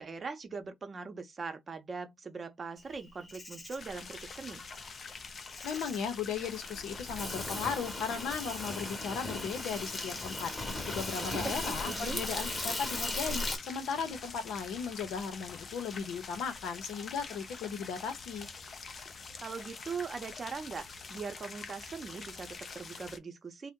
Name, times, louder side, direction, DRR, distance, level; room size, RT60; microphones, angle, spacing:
voice 1, 0.0-4.6 11.1-12.2 19.4-23.7, right 4 dB, 40° right, 0.7 m, -41 dB
Insect, 2.9-13.6, left 2 dB, 30° left, 0.9 m, -38 dB
sound 1, 3.8-23.2, left 4 dB, 45° left, 0.5 m, -46 dB
voice 2, 5.6-10.5 10.9-18.5, left 6 dB, 85° left, 0.7 m, -36 dB
2.7 x 2.1 x 3.6 m
cardioid pair, 90°, 0 cm